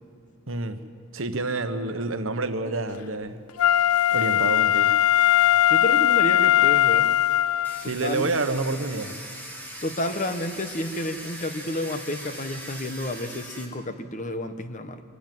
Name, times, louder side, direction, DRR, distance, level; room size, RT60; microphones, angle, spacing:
voice 1, 0.5-0.8 1.1-3.4 4.1-4.9 7.9-9.2, right 3 dB, 65° right, 8 dB, 1.2 m, -28 dB
Wind instrument woodwind instrument, 3.6-7.9 8.4-8.5, left 12 dB, 85° left, 0.4 m, -19 dB
voice 2, 5.7-7.1 7.8-8.3 9.8-15.0, left 1 dB, 35° left, 9 dB, 1.1 m, -30 dB
Domestic sounds home sounds, 7.6-13.7, right 1 dB, 10° left, 2.5 m, -40 dB
24.0 x 13.0 x 9.3 m, 2.3 s
head